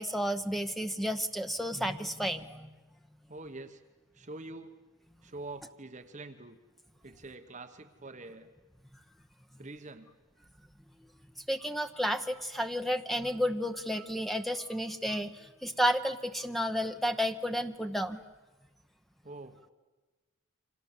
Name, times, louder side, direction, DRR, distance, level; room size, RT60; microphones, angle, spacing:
voice 1, 0.0-2.7 11.5-18.2, equal, ahead, 7 dB, 0.9 m, -32 dB
voice 2, 3.3-3.8 4.1-4.7 5.2-6.6 7.0-8.5 9.6-10.1 19.2-19.7, right 2 dB, 35° right, 7 dB, 1.2 m, -45 dB
29.0 x 25.5 x 7.4 m, 1.2 s
head